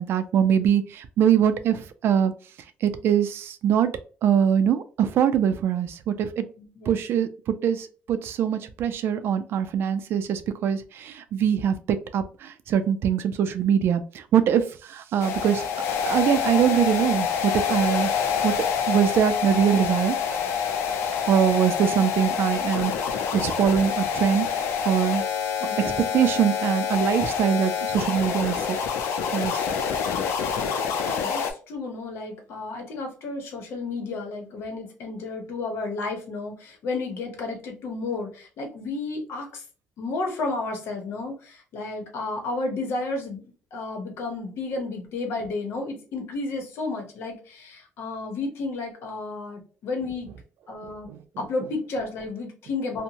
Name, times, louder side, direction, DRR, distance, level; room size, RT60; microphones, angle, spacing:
voice 1, 0.0-2.3 2.8-3.9 4.2-6.4 6.9-15.6 16.1-18.1 18.4-18.5 18.9-20.2 21.3-25.2 25.8-28.8 29.3-29.7 30.7-30.8 51.1-51.2, right 8 dB, 60° right, 10 dB, 0.4 m, -23 dB
voice 2, 6.6-7.0 25.6-26.0 31.1-39.6 40.0-43.4 43.7-50.3 50.7-51.1 51.4-53.0, left 3 dB, 70° left, 3 dB, 0.9 m, -32 dB
sound 1, 15.2-31.5, left 7 dB, 90° left, 0.5 m, -27 dB
2.7 x 2.1 x 2.8 m, 0.38 s
cardioid pair, 120°, 4 cm